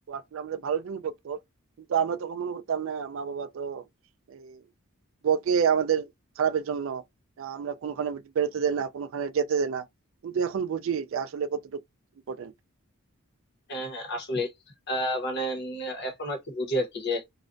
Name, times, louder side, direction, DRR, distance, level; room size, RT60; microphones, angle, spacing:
voice 1, 0.1-1.4 1.8-3.9 4.3-4.6 5.2-6.1 6.4-7.0 7.4-9.9 10.2-11.8 12.3-12.5, right 7 dB, 60° right, 0.3 m, -28 dB
voice 2, 13.7-14.5 14.9-17.2, equal, 50° left, 0.8 m, -30 dB
2.4 x 2.1 x 2.5 m
head